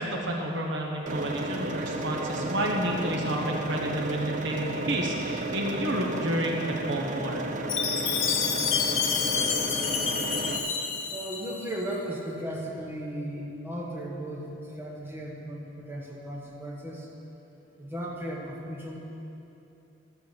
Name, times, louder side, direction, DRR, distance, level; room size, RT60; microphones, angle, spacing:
voice 1, 0.0-7.4, right 1 dB, 60° right, 0 dB, 1.2 m, -30 dB
sound 1, 1.1-10.6, right 2 dB, 40° right, 0.6 m, -33 dB
Chime, 7.7-11.8, left 6 dB, 85° left, 0.9 m, -28 dB
voice 2, 11.1-17.1 17.8-19.0, right 1 dB, 10° right, -4 dB, 1.5 m, -36 dB
13.0 x 5.1 x 8.2 m, 2.9 s
head